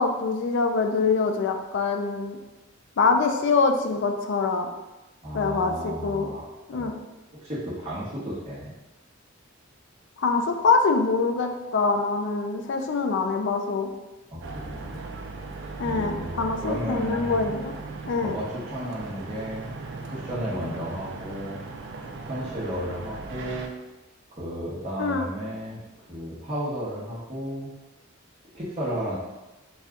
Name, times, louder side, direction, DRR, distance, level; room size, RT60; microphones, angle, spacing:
voice 1, 0.0-2.4 3.0-4.7 5.3-6.3 6.7-7.0 10.2-13.9 15.8-17.7 18.1-18.4 25.0-25.3, left 4 dB, 60° left, 5 dB, 0.4 m, -24 dB
voice 2, 5.2-7.0 7.3-8.7 14.3-15.0 15.8-17.5 18.2-19.7 20.1-21.6 22.2-23.7 24.4-25.8 26.1-27.7 28.5-29.2, equal, 30° right, -9 dB, 1.0 m, -33 dB
sound 1, 14.4-23.7, right 3 dB, 60° right, 0.4 m, -38 dB
4.1 x 2.3 x 3.6 m, 1.0 s
head